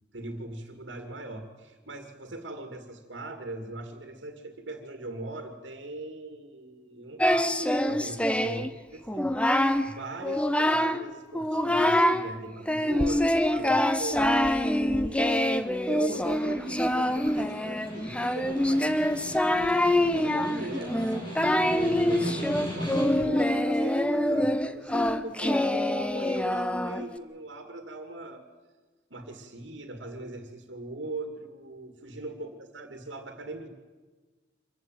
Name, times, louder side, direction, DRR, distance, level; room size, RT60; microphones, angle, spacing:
voice 1, 0.1-9.3 9.8-19.4 20.1-28.4 29.1-33.7, right 2 dB, 90° right, 6 dB, 2.3 m, -40 dB
Singing, 7.2-8.7 9.1-9.8 10.2-11.0 11.3-12.2 12.7-27.2, left 1 dB, 5° left, 0.9 m, -25 dB
Snare drum, 15.9-23.4, equal, 25° left, 6.5 m, -38 dB
25.0 x 15.0 x 9.2 m, 1.4 s
head